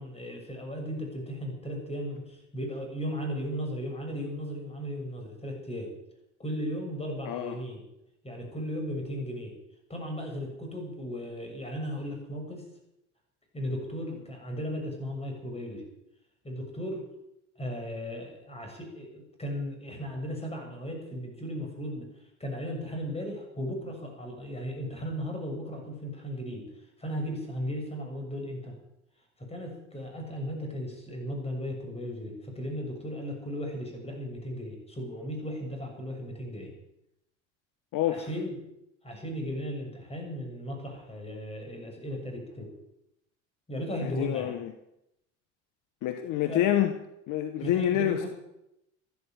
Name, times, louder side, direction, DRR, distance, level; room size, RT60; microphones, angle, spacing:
voice 1, 0.0-5.9 6.4-7.8 8.2-9.5 9.9-12.6 13.5-15.9 16.4-17.0 17.6-22.1 22.4-26.7 27.0-28.7 29.5-36.7 38.0-38.6 39.0-42.7 43.7-44.5 46.5-46.6 47.6-48.3, equal, 15° left, 7.2 m, -36 dB
voice 2, 7.2-7.6 37.9-38.3 44.0-44.7 46.0-47.0 47.3-48.3, left 11 dB, 55° left, 1.4 m, -27 dB
14.5 x 12.0 x 7.8 m
hypercardioid pair, 80°, 36 cm